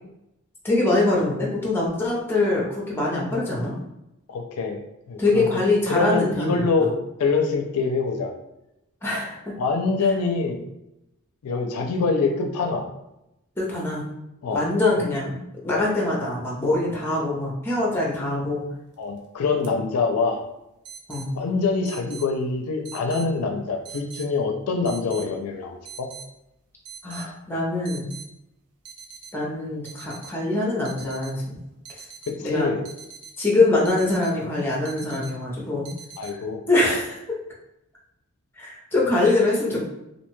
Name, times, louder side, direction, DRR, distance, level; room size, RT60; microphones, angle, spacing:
voice 1, 0.6-3.7 5.2-6.9 9.0-9.4 13.6-14.1 14.5-15.4 15.6-18.6 21.1-21.4 27.0-28.1 29.3-31.6 31.9-32.1 32.4-32.7 33.4-35.9 36.7-37.2 38.6-39.8, left 2 dB, 10° left, -3 dB, 0.6 m, -23 dB
voice 2, 4.3-4.8 5.1-5.6 5.9-6.9 7.2-8.3 9.6-10.6 11.4-12.8 14.4-14.7 15.7-15.9 19.0-20.4 21.3-26.1 32.3-32.8 36.2-36.6, left 4 dB, 80° left, 4 dB, 0.4 m, -25 dB
sound 1, 18.9-19.2 19.6-19.7 20.8-21.3 21.9-22.3 22.8-23.3 23.8-24.3 24.8-25.3 25.9-26.3 26.8-27.3 27.8-28.3 28.9-29.3 29.8-30.3 30.9-31.3 31.9-32.3 32.8-33.4 33.9-34.3 34.8-35.3 35.9-36.3, right 7 dB, 90° right, 0.5 m, -42 dB
2.6 x 2.2 x 3.0 m, 0.86 s
head